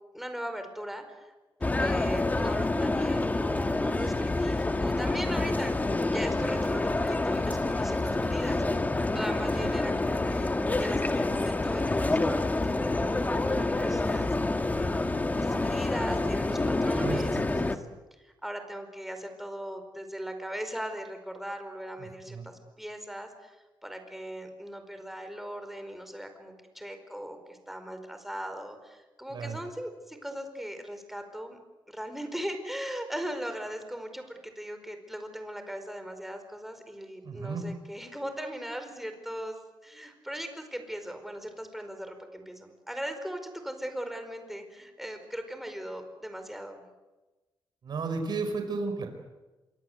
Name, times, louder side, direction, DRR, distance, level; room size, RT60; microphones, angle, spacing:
voice 1, 0.1-1.3 1.6-5.7 6.1-17.8 18.2-31.6 31.9-46.8, equal, 5° right, 7 dB, 4.9 m, -39 dB
sound 1, 1.6-17.8, left 2 dB, 20° left, 1.7 m, -27 dB
voice 2, 22.0-22.5 29.3-29.6 37.2-37.6 47.8-49.1, right 4 dB, 60° right, 6 dB, 5.2 m, -33 dB
26.5 x 24.0 x 8.1 m, 1.1 s
cardioid pair, 105°, 8 cm